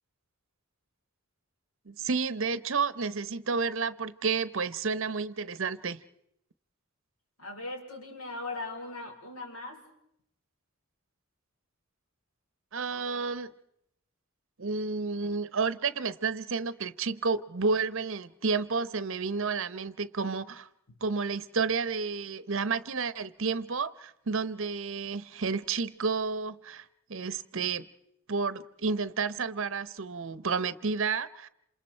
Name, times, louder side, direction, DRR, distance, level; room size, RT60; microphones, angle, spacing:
voice 1, 1.9-6.0 12.7-13.5 14.6-20.7 21.0-26.8 27.1-27.9 28.3-31.5, right 4 dB, 60° right, 0.8 m, -31 dB
voice 2, 7.4-9.8 20.9-21.0, left 2 dB, 80° left, 4.6 m, -39 dB
28.0 x 27.0 x 4.4 m
head